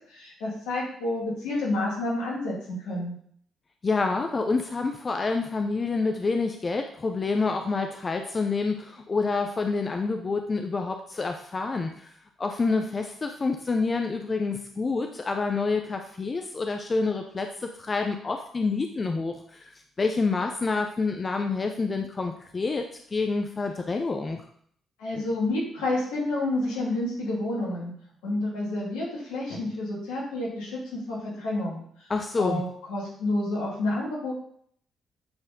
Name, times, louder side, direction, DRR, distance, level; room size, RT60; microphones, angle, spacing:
voice 1, 0.1-2.5 2.8-3.2 25.0-27.9 28.2-31.8 32.4-34.3, left 2 dB, 80° left, -5 dB, 2.5 m, -29 dB
voice 2, 3.8-12.1 12.4-19.7 20.0-22.8 23.1-24.4 32.1-32.6, left 4 dB, 40° left, 5 dB, 0.7 m, -28 dB
8.7 x 4.4 x 3.7 m, 0.64 s
hypercardioid pair, 45°, 0 cm